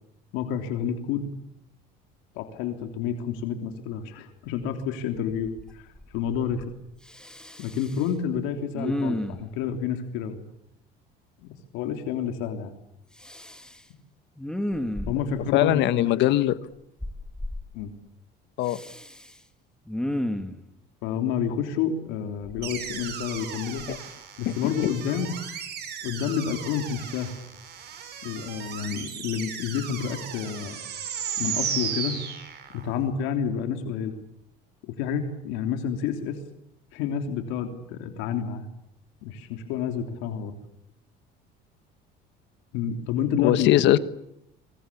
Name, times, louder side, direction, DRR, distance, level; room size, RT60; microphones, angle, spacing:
voice 1, 0.3-1.3 2.3-6.7 7.6-10.4 11.4-12.7 15.1-16.3 17.7-17.9 21.0-23.8 24.4-25.3 26.0-27.3 28.2-30.8 31.4-32.2 32.7-34.1 35.0-36.4 36.9-38.7 39.2-40.5 42.7-43.7, left 8 dB, 85° left, 6 dB, 3.3 m, -29 dB
Respiratory sounds, 4.6-4.7 5.1-5.7 5.9-6.7 7.1-8.1 8.7-9.6 13.2-13.8 14.4-15.4 17.0-17.6 18.6-19.3 19.9-20.6 22.4-23.4 23.8-24.0, left 1 dB, 5° left, 2.0 m, -33 dB
voice 2, 15.5-16.6 18.6-18.8 23.9-24.0 24.4-24.7 43.4-44.0, left 14 dB, 65° left, 14 dB, 1.3 m, -21 dB
sound 1, 22.6-32.9, right 8 dB, 55° right, 6.6 m, -35 dB
26.5 x 23.5 x 8.5 m, 0.76 s
cardioid pair, 125°, 20 cm